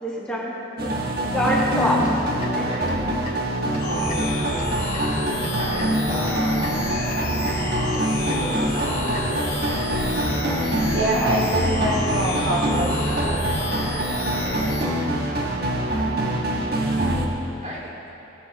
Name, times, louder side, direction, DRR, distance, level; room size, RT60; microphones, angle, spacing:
voice 1, 0.0-2.0 2.4-2.7, equal, 5° left, -6 dB, 1.9 m, -25 dB
sound 1, 0.8-17.3, right 1 dB, 55° right, 1.3 m, -24 dB
sound 2, 1.3-9.5, left 1 dB, 45° left, 1.5 m, -40 dB
voice 2, 2.6-3.0 5.6-9.0 9.6-9.9 14.2-14.6 17.6-18.0, equal, 35° right, -4 dB, 2.5 m, -37 dB
sound 3, 3.8-14.8, left 2 dB, 65° left, 2.0 m, -30 dB
voice 3, 10.9-13.0, right 1 dB, 80° right, -4 dB, 2.0 m, -25 dB
19.0 x 7.3 x 4.0 m, 2.9 s
head